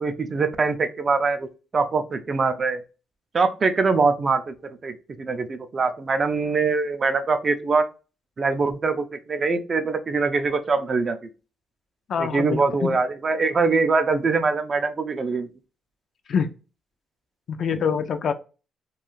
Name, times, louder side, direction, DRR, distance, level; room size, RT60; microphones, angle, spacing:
voice 1, 0.0-1.5 1.7-2.8 3.3-4.5 4.8-7.8 8.4-11.2 12.2-15.5, right 4 dB, 40° right, 9 dB, 0.4 m, -23 dB
voice 2, 12.1-13.0 16.3-16.5 17.5-18.3, left 6 dB, 60° left, 9 dB, 0.3 m, -25 dB
2.3 x 2.3 x 2.9 m, 0.33 s
cardioid pair, 90°, 0 cm